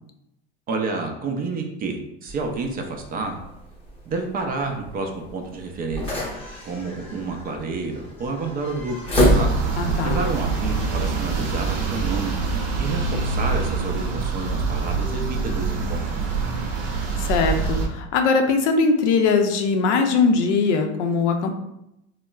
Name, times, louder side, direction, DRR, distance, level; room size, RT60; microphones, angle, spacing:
voice 1, 0.7-3.4 4.1-6.2 6.6-9.0 9.3-12.3 12.8-16.0, right 3 dB, 25° right, 3 dB, 0.4 m, -29 dB
sound 1, 2.3-10.0, equal, 15° left, 0.7 m, -28 dB
sound 2, 9.2-17.9, right 4 dB, 55° right, 0.7 m, -25 dB
voice 2, 9.8-10.2 17.2-21.5, left 4 dB, 80° left, 5 dB, 0.5 m, -20 dB
3.5 x 2.0 x 2.2 m, 0.84 s
hypercardioid pair, 105°, 35 cm